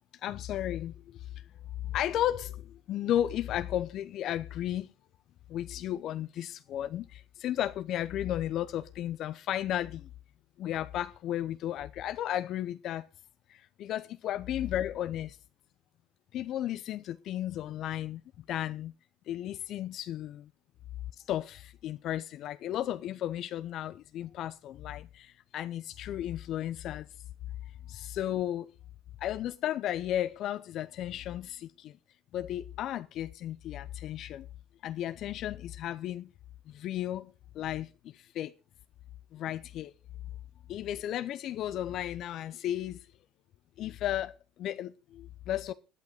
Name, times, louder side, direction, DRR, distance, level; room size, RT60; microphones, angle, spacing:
voice 1, 0.2-1.3 1.8-4.9 5.5-10.1 10.6-13.0 13.5-15.4 16.3-18.2 18.5-18.9 19.3-20.5 21.3-27.1 27.9-28.7 29.2-32.0 32.3-34.5 34.8-36.3 36.7-38.5 39.3-39.9 40.7-43.1 43.8-45.7, left 12 dB, 55° left, 0.6 m, -34 dB
11.0 x 10.5 x 5.1 m
hypercardioid pair, 75°, 0 cm